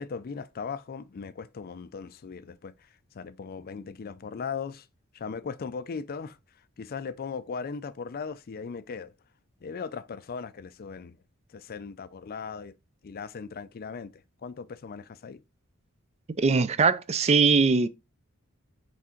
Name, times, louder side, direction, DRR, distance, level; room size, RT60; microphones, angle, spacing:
voice 1, 0.0-2.7 3.1-4.9 5.1-6.4 6.8-9.1 9.6-11.2 11.5-12.7 13.0-15.4, left 5 dB, 45° left, 0.4 m, -38 dB
voice 2, 16.4-17.9, right 4 dB, 30° right, 0.4 m, -21 dB
6.0 x 3.6 x 4.4 m
head